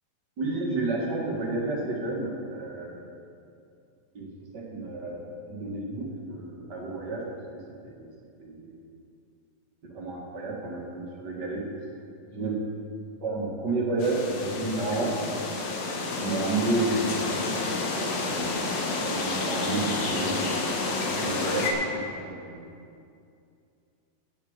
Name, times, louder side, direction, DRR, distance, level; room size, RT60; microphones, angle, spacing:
voice 1, 0.4-3.0 4.1-4.3 4.5-5.2 5.5-7.2 7.8-8.1 8.4-8.7 9.8-11.6 12.3-12.6 13.2-15.2 16.2-18.3 19.0-20.7 21.1-22.6, right 2 dB, 40° right, -3 dB, 1.8 m, -31 dB
sound 1, 14.0-21.7, left 3 dB, 80° left, 3.1 m, -30 dB
9.7 x 8.4 x 7.9 m, 2.5 s
omnidirectional pair, 3.9 m